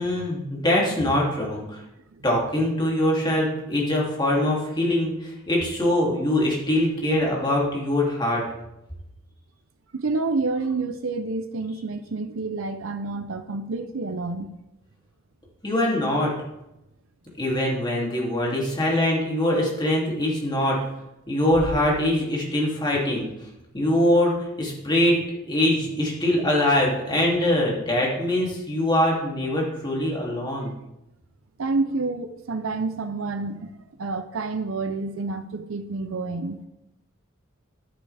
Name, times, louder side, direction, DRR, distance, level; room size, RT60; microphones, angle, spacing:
voice 1, 0.0-1.8 2.2-8.4 15.6-16.3 17.4-20.8 21.3-23.3 23.7-25.2 25.5-30.7, left 1 dB, 20° left, 2.8 m, -23 dB
voice 2, 9.9-14.5 31.6-33.7 34.0-36.7, right 3 dB, 85° right, 0.7 m, -28 dB
sound 1, 16.4-16.5 17.3-17.4 18.1-18.2 19.7-20.2 20.5-20.9 21.2-22.5 22.8-22.9 23.1-23.4, equal, 45° right, 2.4 m, -39 dB
11.0 x 9.8 x 3.5 m
head